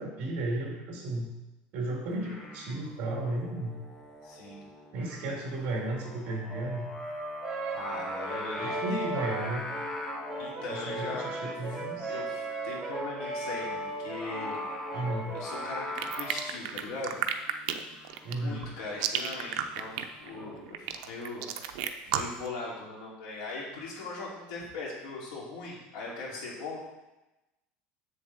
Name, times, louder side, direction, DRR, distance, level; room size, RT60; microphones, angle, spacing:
voice 1, 0.0-1.3 1.7-3.8 4.9-6.9 8.6-9.6 10.7-12.2 14.9-15.4 18.2-18.6, right 2 dB, 45° right, -1 dB, 2.2 m, -34 dB
Singing, 2.1-20.6, left 1 dB, 15° left, 0.9 m, -43 dB
voice 2, 4.2-4.6 7.7-9.3 10.4-11.5 12.1-14.6 15.3-17.2 18.3-21.4 22.1-26.8, left 3 dB, 70° left, -4 dB, 2.7 m, -40 dB
Brass instrument, 7.4-16.0, right 2 dB, 10° right, 1.9 m, -36 dB
sound 1, 15.9-22.5, right 10 dB, 70° right, 0.6 m, -32 dB
7.7 x 6.8 x 4.0 m, 1.0 s
cardioid pair, 175°, 4 cm